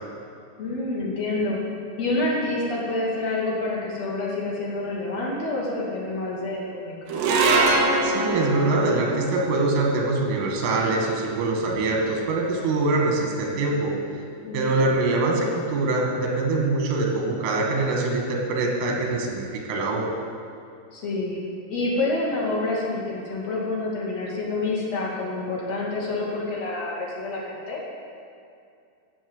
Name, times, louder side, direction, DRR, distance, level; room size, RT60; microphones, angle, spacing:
voice 1, 0.6-1.6 2.0-7.0 14.4-14.8 20.9-21.4 21.7-27.8, left 2 dB, 40° left, -4 dB, 2.9 m, -28 dB
sound 1, 7.1-13.6, right 2 dB, 70° right, 3.2 m, -26 dB
voice 2, 8.0-14.0 14.5-20.1, right 2 dB, 85° right, 0 dB, 4.7 m, -24 dB
15.0 x 7.4 x 8.1 m, 2.4 s
omnidirectional pair, 5.6 m